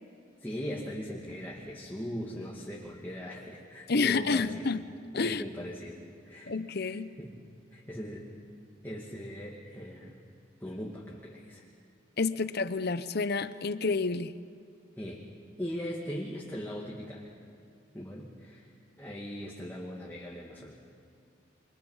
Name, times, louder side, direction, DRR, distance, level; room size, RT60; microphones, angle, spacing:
voice 1, 0.4-4.7 5.1-6.0 6.3-6.5 6.9-7.4 7.7-8.3 8.8-10.2 10.6-11.6 15.0-15.3 15.6-17.3 17.9-18.7 19.0-20.7, equal, 10° left, -3 dB, 2.1 m, -39 dB
voice 2, 3.9-4.8 5.1-5.4 6.5-7.1 12.2-14.3, left 4 dB, 60° left, 13 dB, 0.8 m, -29 dB
28.5 x 24.5 x 5.6 m, 2.5 s
head